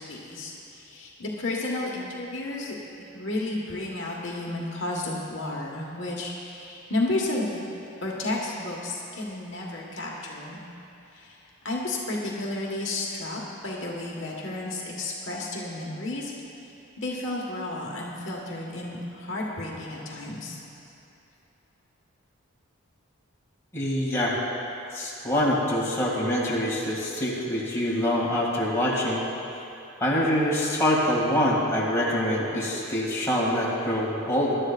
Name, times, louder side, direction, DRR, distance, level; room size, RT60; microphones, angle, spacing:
voice 1, 0.0-2.7 3.1-7.6 8.0-10.6 11.1-11.4 11.6-16.3 17.0-20.6, left 2 dB, 60° left, -3 dB, 1.5 m, -32 dB
voice 2, 23.7-24.4 24.9-29.2 30.0-34.6, equal, 10° left, -6 dB, 2.3 m, -25 dB
23.0 x 12.0 x 2.5 m, 2.9 s
head